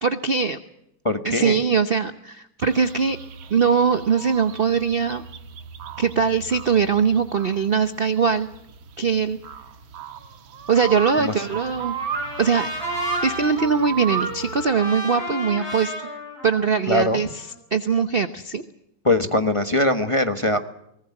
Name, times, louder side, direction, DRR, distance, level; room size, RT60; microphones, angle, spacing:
voice 1, 0.0-0.6 1.2-3.2 3.5-5.2 6.0-8.5 9.0-9.4 10.7-12.0 12.4-12.7 13.2-15.9 16.4-17.3 17.7-18.6, right 6 dB, 45° right, 10 dB, 0.7 m, -21 dB
voice 2, 1.0-1.6 11.2-11.3 16.9-17.2 19.0-20.6, left 1 dB, 20° left, 7 dB, 1.0 m, -21 dB
sound 1, 2.6-14.6, right 7 dB, 85° right, 2.1 m, -34 dB
Trumpet, 11.3-17.5, left 1 dB, 50° left, 8.3 m, -34 dB
23.5 x 19.5 x 7.3 m, 0.79 s
omnidirectional pair, 2.1 m